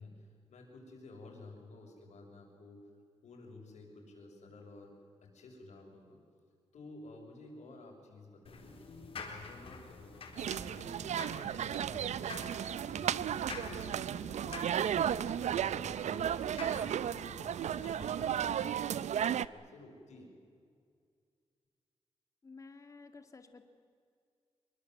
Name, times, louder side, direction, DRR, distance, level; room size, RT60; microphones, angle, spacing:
voice 1, 0.0-2.8 3.2-4.9 5.2-6.2 6.7-10.2 10.6-13.2 13.6-17.5 17.8-20.3, left 3 dB, 90° left, 1 dB, 6.7 m, -53 dB
sound 1, 8.4-18.3, left 4 dB, 55° left, 4.1 m, -49 dB
sound 2, 10.4-19.5, right 9 dB, 85° right, 0.6 m, -34 dB
voice 2, 22.4-23.6, left 4 dB, 30° left, 8 dB, 2.0 m, -52 dB
25.0 x 23.0 x 7.9 m, 2.2 s
wide cardioid pair, 175°, 12 cm